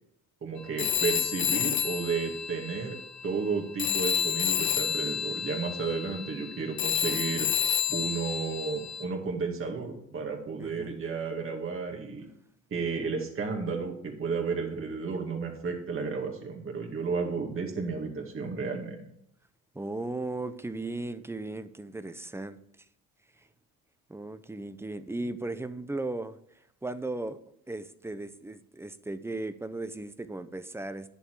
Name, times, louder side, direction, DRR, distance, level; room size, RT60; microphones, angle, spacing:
voice 1, 0.4-3.0 3.2-7.5 7.9-12.3 12.7-19.1, right 5 dB, 40° right, 1 dB, 2.2 m, -32 dB
Telephone, 0.8-3.5 3.8-9.0, left 9 dB, 55° left, 0.9 m, -30 dB
voice 2, 10.6-11.0 19.7-22.6 24.1-26.4 26.8-27.4 27.7-31.1, right 2 dB, 10° right, 12 dB, 0.6 m, -36 dB
10.5 x 6.9 x 4.7 m, 0.74 s
cardioid pair, 115°, 32 cm